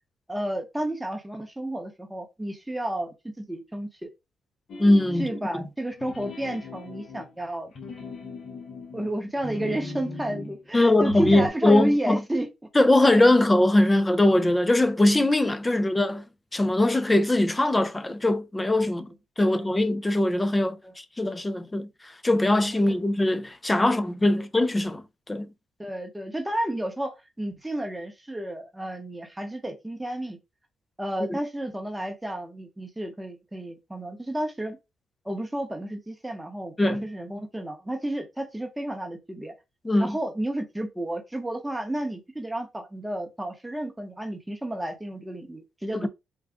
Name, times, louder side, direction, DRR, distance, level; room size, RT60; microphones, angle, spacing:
voice 1, 0.3-4.1 5.2-7.7 8.9-12.5 13.0-13.1 15.7-16.0 19.4-19.6 20.8-20.9 22.9-23.0 23.8-24.1 24.3-24.4 25.8-30.4 31.0-34.8 35.2-39.5 40.0-46.1, right 1 dB, 10° right, 0.9 m, -32 dB
sound 1, 4.7-5.5 5.9-10.6 11.0-11.5, left 3 dB, 55° left, 1.0 m, -38 dB
voice 2, 4.8-5.3 5.5-5.6 10.7-12.2 12.8-16.2 16.5-19.1 19.4-21.9 22.2-25.5 31.3-31.4 36.8-37.1 39.8-40.2 46.0-46.1, left 1 dB, 15° left, 0.4 m, -21 dB
3.7 x 2.3 x 3.5 m
cardioid pair, 90°, 0 cm